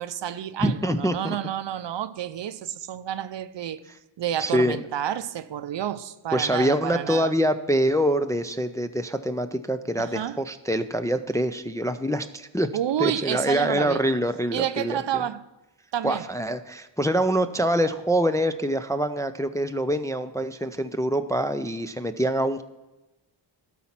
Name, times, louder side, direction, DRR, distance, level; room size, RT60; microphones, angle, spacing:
voice 1, 0.0-3.8 4.2-7.3 10.0-10.4 12.7-14.0 14.5-15.4 15.9-16.3, right 10 dB, 65° right, 0.6 m, -29 dB
voice 2, 0.6-1.4 4.4-4.9 6.3-12.7 13.0-15.0 16.0-22.6, equal, 10° left, 0.3 m, -25 dB
12.5 x 4.3 x 5.8 m
cardioid pair, 75°, 47 cm